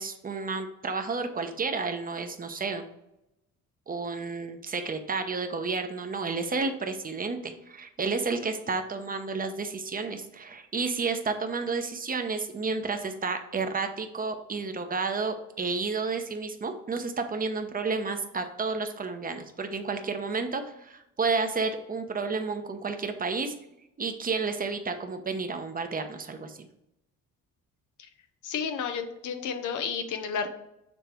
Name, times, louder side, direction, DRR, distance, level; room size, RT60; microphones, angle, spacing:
voice 1, 0.0-2.8 3.9-23.5 24.0-26.7, right 4 dB, 30° right, 6 dB, 0.9 m, -31 dB
voice 2, 28.4-30.5, left 6 dB, 80° left, 7 dB, 0.8 m, -31 dB
7.1 x 3.3 x 4.5 m, 0.85 s
cardioid pair, 90°, 30 cm